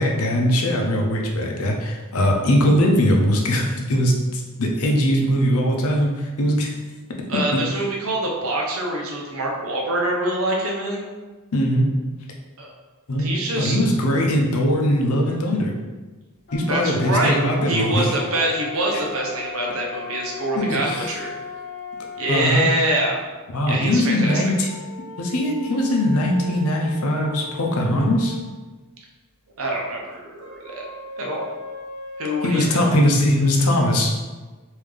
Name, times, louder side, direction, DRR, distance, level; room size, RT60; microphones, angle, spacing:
voice 1, 0.0-6.7 7.3-7.6 11.5-11.9 13.1-15.7 16.5-18.0 20.5-21.1 22.3-22.6 23.5-24.7 25.2-28.3 32.4-34.1, equal, 70° left, 1 dB, 0.6 m, -20 dB
voice 2, 7.3-11.0 12.6-12.7 13.2-13.8 16.7-17.4 17.7-21.3 22.2-23.2 23.7-24.4 29.6-30.8 31.2-31.4 32.2-32.8, right 1 dB, 65° right, -1 dB, 0.7 m, -25 dB
sound 1, 16.5-22.7 24.2-28.5 30.4-32.6, left 4 dB, 45° left, 0.9 m, -37 dB
3.3 x 2.7 x 3.5 m, 1.3 s
head